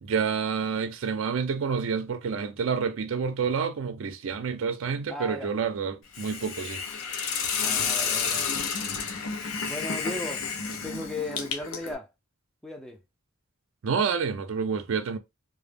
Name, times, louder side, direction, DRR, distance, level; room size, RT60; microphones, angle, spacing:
voice 1, 0.0-6.8 13.8-15.2, right 6 dB, 65° right, 0.4 m, -28 dB
voice 2, 5.1-5.5 7.6-8.6 9.7-10.5 10.8-12.1 12.6-13.0, left 1 dB, ahead, 0.3 m, -36 dB
Hiss, 6.1-11.9, left 6 dB, 80° left, 0.5 m, -30 dB
2.1 x 2.0 x 3.3 m
head